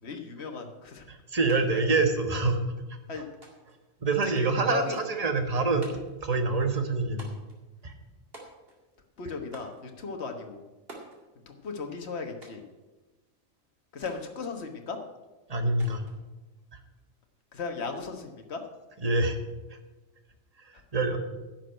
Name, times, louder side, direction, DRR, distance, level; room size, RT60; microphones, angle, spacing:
voice 1, 0.0-1.1 1.7-1.8 3.1-3.3 4.4-4.9 9.2-10.6 11.5-12.6 13.9-15.0 17.5-18.6, left 4 dB, 60° left, 4 dB, 1.6 m, -36 dB
voice 2, 1.1-2.6 3.2-3.3 4.0-5.8 6.2-7.3 7.8-7.9 15.5-16.1 16.7-16.8 19.0-19.4 19.7-19.8 20.6-21.2, right 3 dB, 30° right, 6 dB, 1.3 m, -26 dB
sound 1, 1.5-1.6 1.9-2.6 3.4-3.8 4.9-5.2 5.8-6.2 7.2-7.6 8.3-8.9 9.5-9.8 10.9-11.2 12.4-12.7 14.0-14.2 15.8-16.2, right 2 dB, 50° right, 2.6 m, -48 dB
11.0 x 6.2 x 8.8 m, 1.1 s
omnidirectional pair, 1.3 m